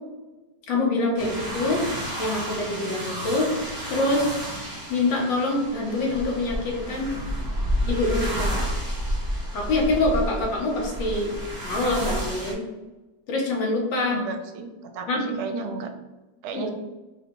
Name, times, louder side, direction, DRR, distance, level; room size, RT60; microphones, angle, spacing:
voice 1, 0.7-1.9 2.2-3.6 3.9-4.3 4.9-7.1 7.8-8.5 9.5-11.3 11.6-12.6 13.3-14.2 15.1-15.2 16.5-16.7, left 2 dB, 70° left, -1 dB, 1.5 m, -25 dB
sound 1, 1.2-12.5, equal, 35° right, 0.3 m, -30 dB
voice 2, 14.0-15.9 16.4-16.7, right 4 dB, 80° right, 6 dB, 1.4 m, -33 dB
4.0 x 2.2 x 4.3 m, 1.1 s
omnidirectional pair, 2.3 m